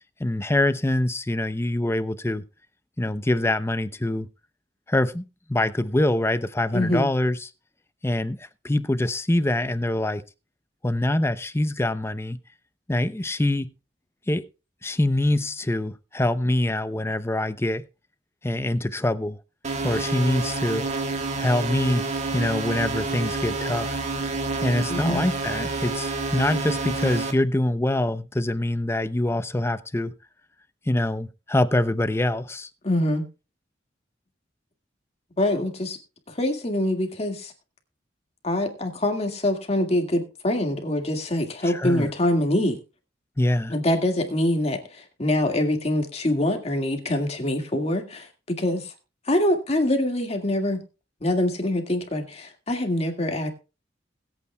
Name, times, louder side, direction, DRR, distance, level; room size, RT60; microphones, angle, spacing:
voice 1, 0.2-2.4 3.0-4.3 4.9-7.5 8.0-10.2 10.8-12.4 12.9-13.7 14.3-14.5 14.8-17.9 18.4-19.4 19.8-20.9 21.4-24.0 24.6-30.1 30.9-32.7 41.6-42.1 43.4-43.7, left 1 dB, 15° left, 0.6 m, -24 dB
voice 2, 6.7-7.1 24.9-25.3 32.8-33.2 35.4-36.0 36.3-37.5 38.4-42.8 43.7-48.9 49.3-50.8 51.2-53.5, left 1 dB, 35° left, 2.0 m, -24 dB
sound 1, 19.6-27.3, right 3 dB, 40° right, 1.6 m, -29 dB
20.5 x 8.6 x 2.3 m
head